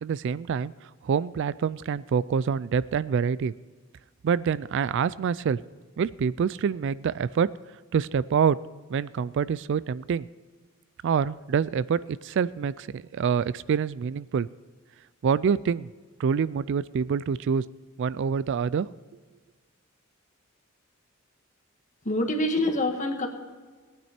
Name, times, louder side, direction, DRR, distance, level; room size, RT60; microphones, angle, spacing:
voice 1, 0.0-3.5 4.2-5.6 6.0-7.5 7.9-8.6 8.9-10.3 11.0-14.5 15.2-15.9 16.2-17.6 18.0-18.9, right 6 dB, 55° right, 18 dB, 0.3 m, -26 dB
voice 2, 22.1-23.3, left 1 dB, 35° left, 4 dB, 1.6 m, -25 dB
18.5 x 9.3 x 4.4 m, 1.4 s
head